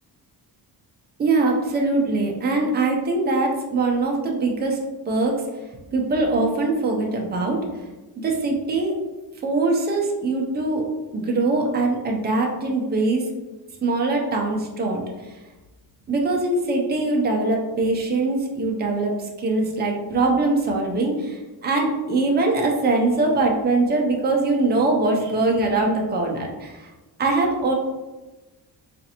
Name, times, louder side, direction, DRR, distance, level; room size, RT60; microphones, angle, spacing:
voice 1, 1.2-4.8 5.1-5.3 5.9-7.6 8.2-9.0 9.4-10.9 11.1-13.3 13.8-15.0 16.1-26.9 27.2-27.7, right 2 dB, 25° right, 0 dB, 0.5 m, -22 dB
4.1 x 2.5 x 2.8 m, 1.1 s
wide cardioid pair, 170°, 40 cm